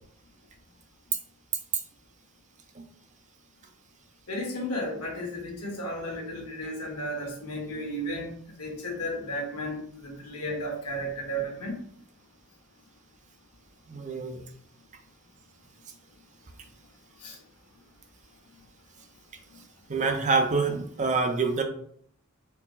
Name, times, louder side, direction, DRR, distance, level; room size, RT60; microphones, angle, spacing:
voice 1, 4.3-11.7 17.2-17.4, equal, 90° left, -1 dB, 1.4 m, -34 dB
voice 2, 13.9-14.4 19.9-21.6, right 4 dB, 35° right, 5 dB, 0.5 m, -26 dB
4.4 x 2.0 x 3.9 m, 0.62 s
head